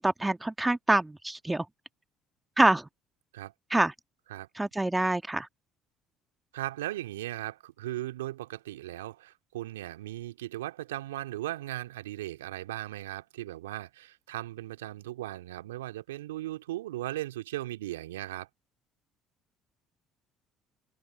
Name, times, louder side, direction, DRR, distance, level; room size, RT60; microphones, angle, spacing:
voice 1, 0.0-1.6 2.6-2.9 3.7-3.9 4.6-5.5, right 2 dB, 10° right, 1.5 m, -25 dB
voice 2, 6.5-18.5, right 15 dB, 80° right, 2.2 m, -37 dB
open air
hypercardioid pair, 55°, 0 cm